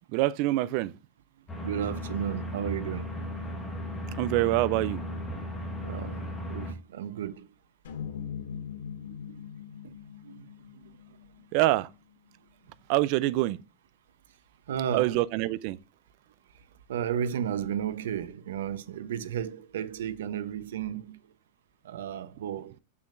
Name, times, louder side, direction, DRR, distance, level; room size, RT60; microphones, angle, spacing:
voice 1, 0.1-0.9 4.2-5.0 11.5-11.9 12.9-13.6 14.9-15.8, right 17 dB, 35° right, 0.4 m, -25 dB
sound 1, 1.5-6.7, left 1 dB, 10° left, 1.3 m, -36 dB
voice 2, 1.6-3.1 5.8-7.5 8.5-8.6 9.0-9.4 9.8-9.9 10.2-10.5 10.7-10.9 14.7-15.2 16.9-21.2 21.8-22.8, right 9 dB, 85° right, 0.8 m, -34 dB
sound 2, 7.8-12.2, left 8 dB, 90° left, 2.1 m, -41 dB
7.0 x 6.6 x 2.6 m
supercardioid pair, 175°, 0 cm